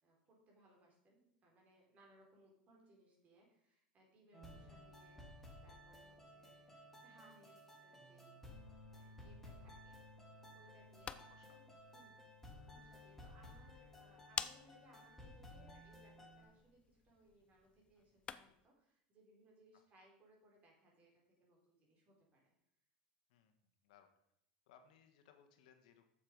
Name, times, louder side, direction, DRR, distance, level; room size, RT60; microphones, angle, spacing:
voice 1, 0.0-8.5 8.9-10.2 10.5-22.5, right 1 dB, 35° right, -1 dB, 3.8 m, -68 dB
sound 1, 4.3-16.4, left 1 dB, 5° left, 2.4 m, -57 dB
sound 2, 10.7-18.7, left 7 dB, 25° left, 0.5 m, -51 dB
voice 2, 11.0-11.6 19.7-19.8 23.3-23.5 23.8-24.1 24.7-26.1, left 8 dB, 80° left, 6 dB, 1.4 m, -66 dB
7.7 x 7.1 x 5.3 m, 0.73 s
supercardioid pair, 115°, 4 cm